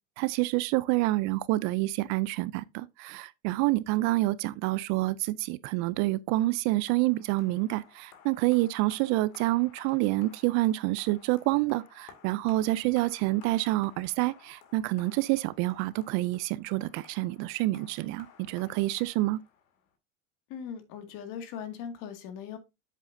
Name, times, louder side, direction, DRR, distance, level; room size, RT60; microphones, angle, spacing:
voice 1, 0.2-19.4, right 19 dB, 45° right, 0.4 m, -28 dB
sound 1, 6.9-19.9, left 8 dB, 80° left, 2.3 m, -56 dB
voice 2, 20.5-22.6, left 8 dB, 50° left, 2.1 m, -39 dB
8.3 x 7.6 x 2.6 m
supercardioid pair, 135°, 40 cm